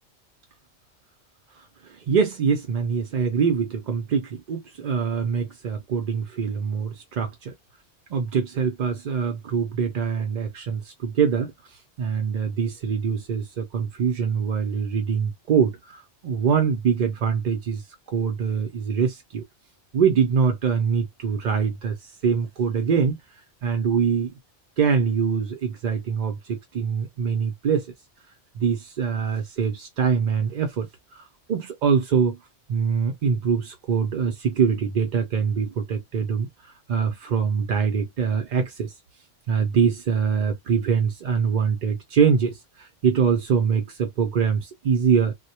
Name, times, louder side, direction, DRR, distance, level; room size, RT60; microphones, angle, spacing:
voice 1, 1.8-7.5 8.1-19.4 19.9-23.2 23.6-24.3 24.8-27.9 28.5-32.4 32.7-38.9 39.5-45.3, right 6 dB, 55° right, 0.5 m, -24 dB
2.1 x 2.1 x 2.8 m
omnidirectional pair, 1.2 m